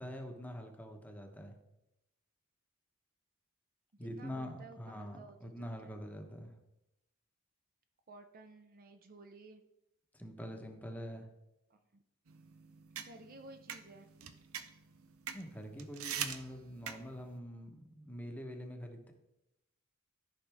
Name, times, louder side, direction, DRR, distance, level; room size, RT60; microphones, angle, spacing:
voice 1, 0.0-1.5 4.0-6.5 10.2-11.2 15.3-19.1, equal, 10° left, 3 dB, 1.0 m, -45 dB
voice 2, 4.0-5.9 8.1-9.6 13.0-14.1, right 2 dB, 45° right, 7 dB, 0.7 m, -54 dB
sound 1, 12.3-17.3, right 8 dB, 80° right, 0.7 m, -44 dB
13.5 x 5.4 x 3.5 m, 0.91 s
head